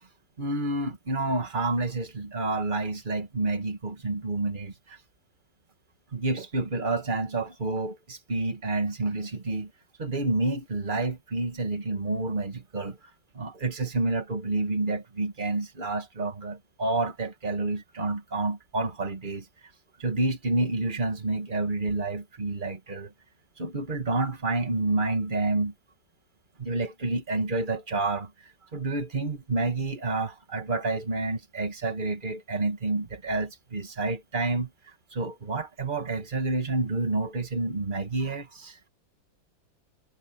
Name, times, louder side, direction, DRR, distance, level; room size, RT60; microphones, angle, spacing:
voice 1, 0.4-5.0 6.1-9.7 10.0-13.0 13.3-19.5 20.0-23.1 23.6-25.7 26.6-34.7 35.1-38.8, right 2 dB, 25° right, 2.0 m, -29 dB
omnidirectional pair, 2.1 m